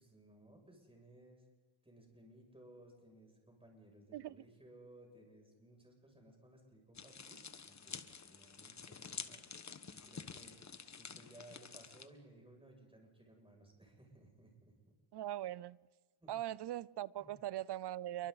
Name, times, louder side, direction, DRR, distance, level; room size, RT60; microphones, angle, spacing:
voice 1, 0.0-1.4 1.8-9.4 9.9-14.7 16.2-16.3 17.2-17.3, right 1 dB, 10° right, 6.7 m, -60 dB
voice 2, 4.1-4.4 15.1-15.8 16.3-18.3, right 13 dB, 60° right, 0.5 m, -41 dB
sound 1, 6.9-12.1, left 5 dB, 35° left, 1.2 m, -49 dB
29.5 x 23.5 x 4.0 m
cardioid pair, 100°, 47 cm